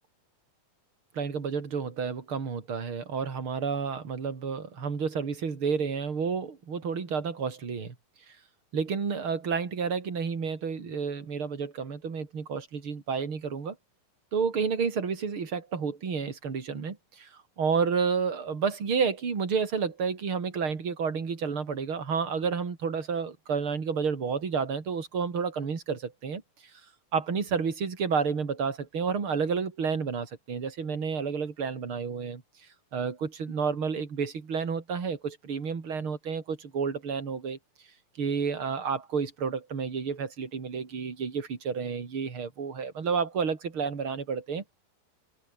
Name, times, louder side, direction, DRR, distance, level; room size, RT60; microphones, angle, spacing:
voice 1, 1.1-7.9 8.7-13.8 14.3-17.3 17.6-26.4 27.1-32.4 32.9-37.6 38.2-44.7, right 5 dB, 35° right, 3.7 m, -30 dB
omnidirectional pair, 4.2 m